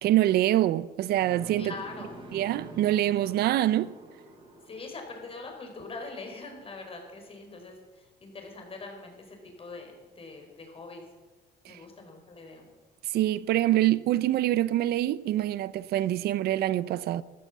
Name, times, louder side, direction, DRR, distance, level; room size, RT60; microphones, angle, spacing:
voice 1, 0.0-1.7 2.3-3.9 11.7-11.8 13.1-17.2, right 13 dB, 70° right, 0.6 m, -25 dB
sound 1, 1.2-7.2, right 2 dB, 30° right, 5.1 m, -48 dB
voice 2, 1.6-2.2 4.7-11.0 11.7-12.7, left 3 dB, 35° left, 4.5 m, -43 dB
14.0 x 12.5 x 7.3 m
cardioid pair, 110°, 17 cm